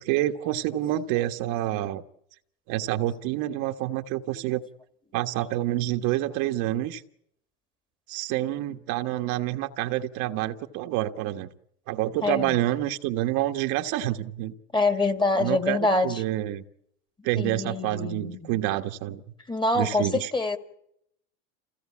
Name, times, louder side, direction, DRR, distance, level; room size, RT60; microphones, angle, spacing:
voice 1, 0.0-2.0 2.7-4.6 5.1-7.0 8.1-11.5 11.9-14.5 15.4-16.6 17.2-19.2 19.7-20.3, right 14 dB, 60° right, 1.5 m, -28 dB
voice 2, 12.2-12.6 14.7-16.2 17.4-18.6 19.5-20.6, left 2 dB, 10° left, 2.0 m, -25 dB
28.0 x 17.0 x 8.6 m
supercardioid pair, 130°, 36 cm